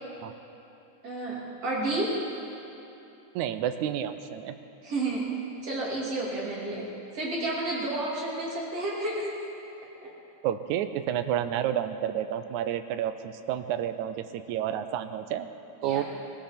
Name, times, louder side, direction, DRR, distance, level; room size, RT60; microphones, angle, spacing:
voice 1, 1.0-2.2 4.8-5.3 5.6-9.3 10.0-10.1 15.8-16.0, right 2 dB, 55° right, -5 dB, 4.0 m, -31 dB
voice 2, 3.4-4.6 10.4-15.5 15.8-16.0, right 10 dB, 90° right, 10 dB, 2.1 m, -30 dB
22.0 x 14.5 x 4.4 m, 2.9 s
omnidirectional pair, 3.3 m